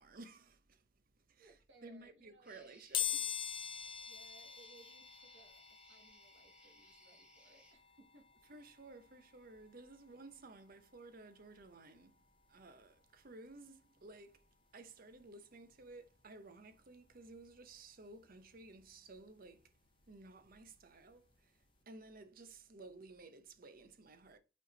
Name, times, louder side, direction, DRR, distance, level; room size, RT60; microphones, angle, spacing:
voice 1, 0.0-3.3 8.5-24.4, right 2 dB, 45° right, 0.7 m, -56 dB
voice 2, 1.4-3.3 4.1-8.3, right 3 dB, 60° right, 2.0 m, -65 dB
sound 1, 2.4-7.7, equal, 5° right, 1.2 m, -65 dB
sound 2, 2.9-13.6 14.1-14.2 15.3-15.4 15.7-17.8 18.2-20.8 21.1-21.3 21.6-21.7, left 10 dB, 25° left, 0.4 m, -45 dB
5.4 x 4.5 x 3.9 m
head